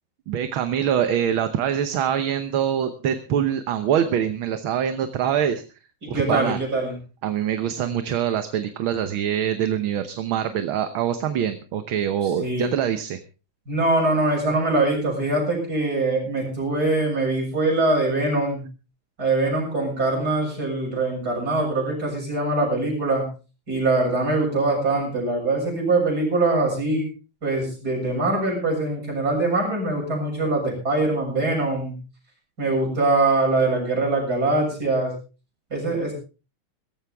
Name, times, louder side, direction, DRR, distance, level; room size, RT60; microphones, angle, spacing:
voice 1, 0.3-5.6 6.1-6.6 7.2-13.2, right 9 dB, 75° right, 9 dB, 1.8 m, -24 dB
voice 2, 6.0-7.0 12.4-12.7 13.7-18.6 19.2-23.3 23.7-27.1 27.4-32.0 32.6-35.1 35.7-36.1, right 2 dB, 45° right, 0 dB, 7.8 m, -23 dB
17.0 x 14.5 x 3.5 m, 0.34 s
omnidirectional pair, 2.3 m